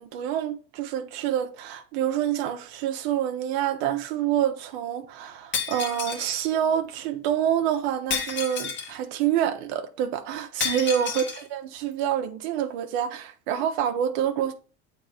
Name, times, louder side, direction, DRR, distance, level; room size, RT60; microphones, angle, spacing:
voice 1, 0.0-14.5, right 10 dB, 90° right, 0.9 m, -27 dB
Shatter, 5.5-6.3 8.1-9.0 10.6-11.4, left 6 dB, 35° left, 1.3 m, -30 dB
7.9 x 3.5 x 4.9 m
cardioid pair, 120°, 31 cm